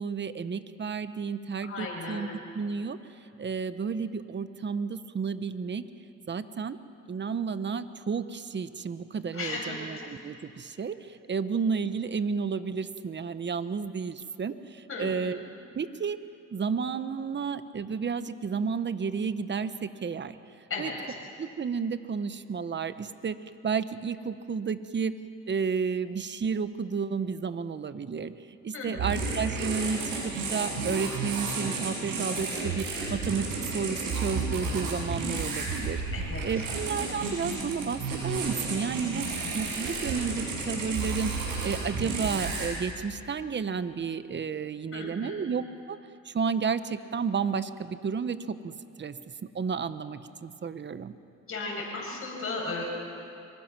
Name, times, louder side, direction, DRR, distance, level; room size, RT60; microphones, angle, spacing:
voice 1, 0.0-2.3 2.5-3.0 3.4-5.8 6.3-6.8 7.1-15.4 15.7-16.2 16.5-20.4 20.8-20.9 21.4-23.4 23.6-25.1 25.5-28.3 28.6-33.5 33.7-36.0 36.4-41.3 41.6-46.0 46.2-48.7 49.0-49.2 49.5-51.1, right 5 dB, 35° right, 12 dB, 1.1 m, -32 dB
voice 2, 1.6-2.2 9.3-9.8 14.9-15.1 20.7-20.9 28.7-29.2 36.1-36.4 44.9-45.4 51.5-52.8, left 3 dB, 45° left, -2 dB, 7.9 m, -35 dB
sound 1, 29.0-42.7, right 4 dB, 90° right, 7.7 m, -32 dB
26.0 x 24.0 x 6.1 m, 2.6 s
cardioid pair, 90°, 30 cm